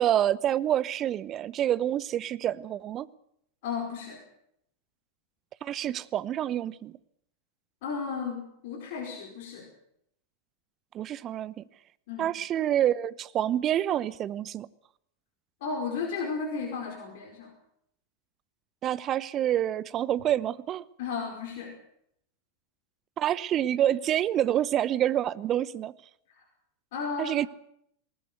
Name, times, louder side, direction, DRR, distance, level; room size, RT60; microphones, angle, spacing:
voice 1, 0.0-3.1 5.6-6.9 10.9-11.6 12.2-14.7 18.8-20.8 23.2-25.9 27.2-27.5, right 11 dB, 30° right, 19 dB, 0.8 m, -27 dB
voice 2, 3.6-4.2 7.8-9.7 12.1-12.3 15.6-17.5 21.0-21.8 26.9-27.4, left 5 dB, 50° left, 1 dB, 5.0 m, -34 dB
20.5 x 19.5 x 8.1 m, 0.72 s
figure-of-eight pair, 90°, 0 cm